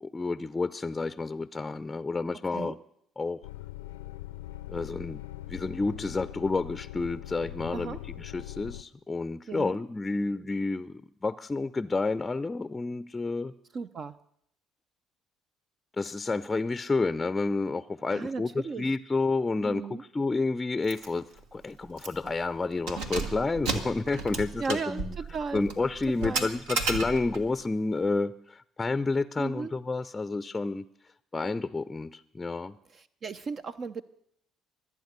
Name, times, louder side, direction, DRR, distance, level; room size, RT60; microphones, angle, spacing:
voice 1, 0.0-2.8 3.2-3.4 4.7-5.2 5.5-13.5 16.0-25.2 25.5-30.9 31.3-32.8, left 3 dB, 20° left, 15 dB, 0.5 m, -30 dB
sound 1, 3.4-8.8, left 15 dB, 80° left, 0.5 m, -41 dB
voice 2, 9.5-9.8 13.7-14.1 18.1-18.9 19.6-20.0 24.6-25.7 26.2-26.5 29.4-29.7 32.9-34.0, right 4 dB, 45° right, 11 dB, 0.5 m, -35 dB
Keys jangling, 20.9-21.1 21.4-21.5 22.0-22.3 22.7-27.5, right 3 dB, 75° right, 1.5 m, -33 dB
23.5 x 8.7 x 6.7 m, 0.72 s
hypercardioid pair, 55°, 0 cm